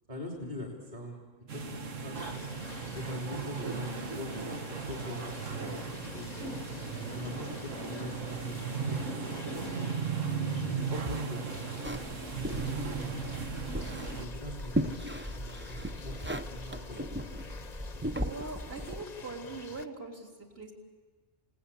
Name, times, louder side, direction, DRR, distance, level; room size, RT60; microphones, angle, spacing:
voice 1, 0.1-1.2 1.5-2.3 2.9-5.8 6.1-6.3 7.0-8.5 8.8-9.9 10.6-11.4 11.7-11.9 12.3-13.1 14.2-14.9 15.2-17.3, left 1 dB, 35° right, 1 dB, 3.3 m, -42 dB
sound 1, 1.5-14.3, right 5 dB, 85° right, 1.7 m, -36 dB
sound 2, 2.1-19.9, left 5 dB, 40° left, 0.9 m, -48 dB
sound 3, 11.8-19.0, equal, 15° right, 0.5 m, -37 dB
voice 2, 12.7-13.1 18.2-20.7, right 3 dB, 50° right, 0 dB, 3.8 m, -42 dB
29.0 x 17.5 x 8.5 m, 1.4 s
omnidirectional pair, 1.3 m